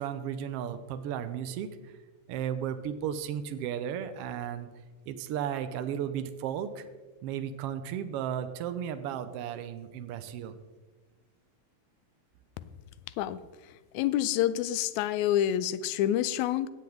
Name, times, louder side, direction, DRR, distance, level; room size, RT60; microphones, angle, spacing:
voice 1, 0.0-1.7 2.3-4.7 5.1-6.8 7.2-10.5, right 9 dB, 90° right, 9 dB, 1.3 m, -34 dB
voice 2, 13.9-16.7, left 11 dB, 80° left, 13 dB, 1.9 m, -27 dB
17.0 x 7.8 x 3.5 m, 1.3 s
omnidirectional pair, 3.5 m